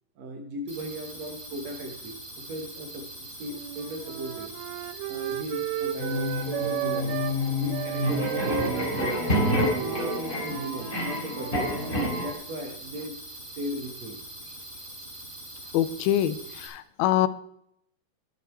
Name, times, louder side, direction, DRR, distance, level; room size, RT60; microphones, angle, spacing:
voice 1, 0.2-3.1 3.4-4.5 5.1-7.2 7.5-9.3 9.8-11.8 12.2-14.2, equal, 55° right, 3 dB, 2.2 m, -37 dB
sound 1, 0.7-16.7, right 1 dB, 20° right, 3.2 m, -43 dB
Wind instrument woodwind instrument, 3.5-7.4 7.7-12.0, right 12 dB, 80° right, 2.0 m, -34 dB
sound 2, 6.0-12.3, left 1 dB, 15° left, 3.2 m, -28 dB
voice 2, 15.7-17.3, left 12 dB, 85° left, 14 dB, 2.5 m, -25 dB
11.0 x 10.5 x 4.5 m, 0.73 s
omnidirectional pair, 4.3 m